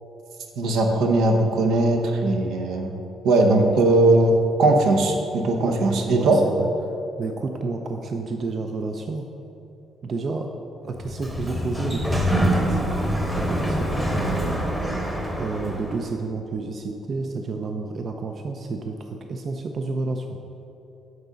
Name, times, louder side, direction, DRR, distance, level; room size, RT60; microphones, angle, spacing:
voice 1, 0.6-3.0 3.2-6.4, right 2 dB, 80° right, 3 dB, 0.8 m, -19 dB
voice 2, 6.1-6.7 7.2-9.2 10.0-10.5 10.8-14.6 15.4-20.4, right 3 dB, 45° right, 4 dB, 0.4 m, -30 dB
Sliding door, 10.9-16.1, equal, 5° right, 1.0 m, -25 dB
7.9 x 3.9 x 5.1 m, 2.9 s
cardioid pair, 95°, 0 cm